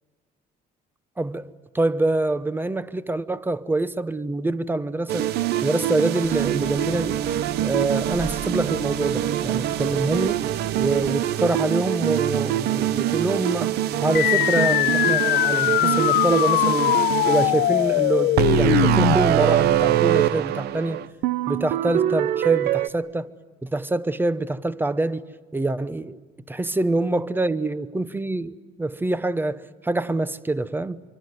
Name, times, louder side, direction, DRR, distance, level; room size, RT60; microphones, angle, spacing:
voice 1, 1.2-5.3 5.6-7.2 7.6-10.4 10.8-13.8 14.0-21.0 21.5-23.3 23.6-25.2 25.5-26.2 26.5-31.0, right 2 dB, 10° right, 0.9 m, -25 dB
sound 1, 5.1-22.9, right 12 dB, 75° right, 0.9 m, -24 dB
sound 2, 6.2-11.1, right 7 dB, 35° right, 1.3 m, -38 dB
sound 3, 14.1-19.1, left 15 dB, 80° left, 0.8 m, -21 dB
25.5 x 24.5 x 9.7 m
cardioid pair, 110°, 17 cm